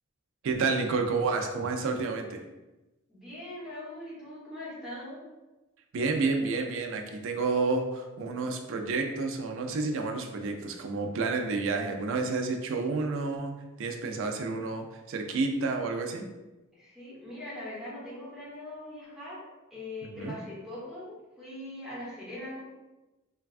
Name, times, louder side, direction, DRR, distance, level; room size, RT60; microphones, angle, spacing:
voice 1, 0.4-2.4 5.9-16.2 20.0-20.4, right 3 dB, 65° right, 4 dB, 0.4 m, -30 dB
voice 2, 3.1-5.2 16.7-19.4 19.7-22.6, left 1 dB, ahead, -9 dB, 1.0 m, -41 dB
3.3 x 2.2 x 2.4 m, 1.1 s
head